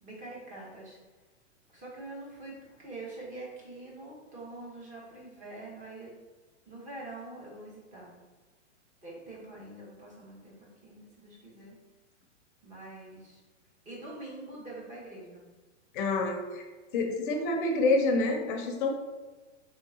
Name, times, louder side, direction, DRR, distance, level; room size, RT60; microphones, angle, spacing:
voice 1, 0.0-1.0 1.7-6.1 6.6-8.1 9.0-10.5 10.8-11.8 12.6-13.4 13.8-15.5, right 2 dB, 20° right, -5 dB, 1.1 m, -45 dB
voice 2, 15.9-16.6 16.9-18.9, left 2 dB, 40° left, 3 dB, 0.7 m, -27 dB
3.5 x 3.4 x 2.8 m, 1.3 s
hypercardioid pair, 140°, 39 cm